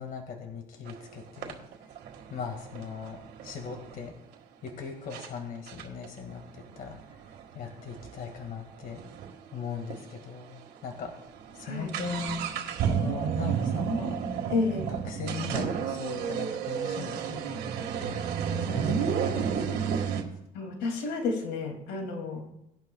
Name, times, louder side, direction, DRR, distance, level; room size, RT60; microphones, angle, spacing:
voice 1, 0.0-1.6 2.3-4.1 4.6-7.2 7.5-9.0 9.5-11.1 11.5-12.5 12.8-14.2 14.9-18.2 18.6-19.8, left 5 dB, 60° left, 3 dB, 2.0 m, -39 dB
sound 1, 0.9-1.0 1.4-4.1 4.7-4.8 5.1-5.3 5.7-9.3 9.6-9.7 9.9-10.0 10.6-10.8 11.1-20.2, right 7 dB, 75° right, 1.7 m, -31 dB
voice 2, 11.6-11.9 14.5-14.9 20.5-22.5, left 3 dB, 90° left, 3 dB, 2.6 m, -31 dB
19.0 x 11.5 x 2.3 m, 0.83 s
cardioid pair, 110°, 17 cm